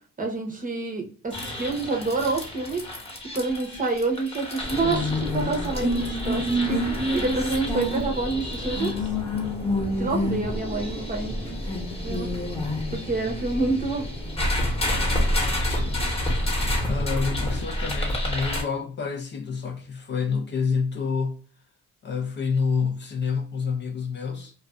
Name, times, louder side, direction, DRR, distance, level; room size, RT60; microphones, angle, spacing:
voice 1, 0.2-2.9 3.3-6.8 7.1-9.1 10.0-11.6 12.0-12.3 12.9-14.1, right 3 dB, 25° right, 0.8 m, -28 dB
sound 1, 1.3-18.6, left 1 dB, 20° left, 0.9 m, -28 dB
voice 2, 15.6-16.0 16.9-21.4 22.0-24.5, left 5 dB, 40° left, 0.5 m, -28 dB
2.4 x 2.3 x 2.3 m
cardioid pair, 90°, 30 cm